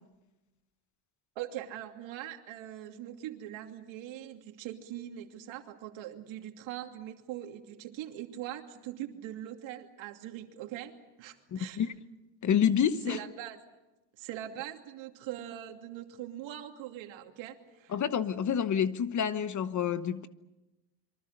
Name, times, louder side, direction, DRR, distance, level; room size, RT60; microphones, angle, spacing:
voice 1, 1.4-11.9 13.1-13.6 14.2-17.9, right 12 dB, 75° right, 2.8 m, -42 dB
voice 2, 11.5-11.9 12.4-13.2 17.9-20.3, left 8 dB, 40° left, 1.1 m, -28 dB
27.0 x 24.0 x 6.7 m
cardioid pair, 125°, 46 cm